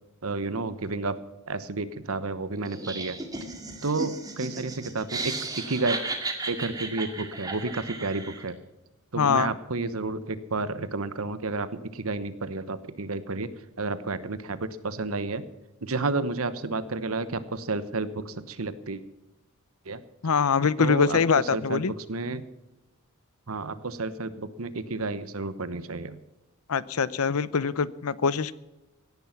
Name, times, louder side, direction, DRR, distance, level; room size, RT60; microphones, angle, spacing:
voice 1, 0.2-1.2 1.5-3.2 3.8-6.0 6.5-8.6 9.1-13.5 13.8-15.4 15.8-19.0 19.9-20.0 20.8-22.4 23.5-26.2, right 3 dB, 75° right, 14 dB, 1.1 m, -31 dB
Laughter, 2.7-8.5, right 3 dB, 15° right, 2.1 m, -35 dB
voice 2, 9.2-9.5 20.2-21.9 26.7-28.5, left 5 dB, 85° left, 19 dB, 0.7 m, -23 dB
17.0 x 11.0 x 5.9 m, 1.0 s
head